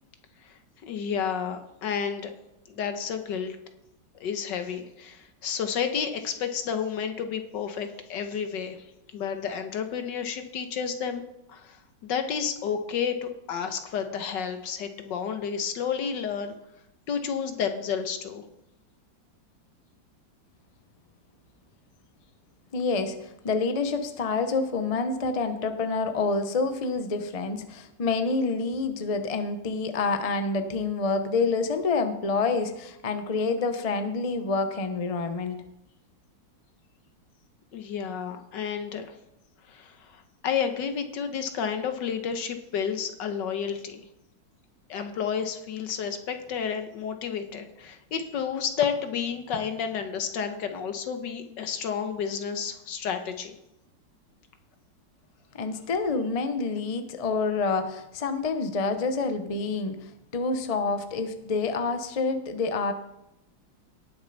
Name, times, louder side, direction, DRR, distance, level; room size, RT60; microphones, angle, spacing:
voice 1, 0.8-2.3 2.7-3.6 4.2-8.9 9.1-11.2 11.5-16.5 17.1-18.4 37.7-39.1 39.7-44.0 44.9-53.6, left 7 dB, 70° left, 7 dB, 1.6 m, -31 dB
voice 2, 22.7-35.6 55.5-62.9, left 4 dB, 50° left, 8 dB, 0.4 m, -27 dB
18.0 x 6.6 x 4.0 m, 0.86 s
omnidirectional pair, 2.1 m